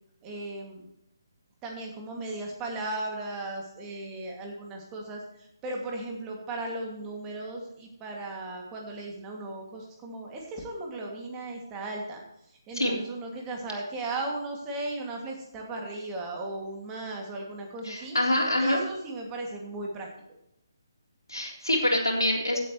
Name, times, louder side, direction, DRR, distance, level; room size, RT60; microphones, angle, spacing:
voice 1, 0.2-0.9 1.6-12.2 12.7-18.2 18.6-20.1, right 2 dB, 20° right, 0 dB, 2.4 m, -36 dB
voice 2, 17.8-18.8 21.3-22.6, left 1 dB, 90° left, -1 dB, 3.6 m, -25 dB
16.0 x 8.3 x 3.2 m, 0.80 s
figure-of-eight pair, 145°, 2 cm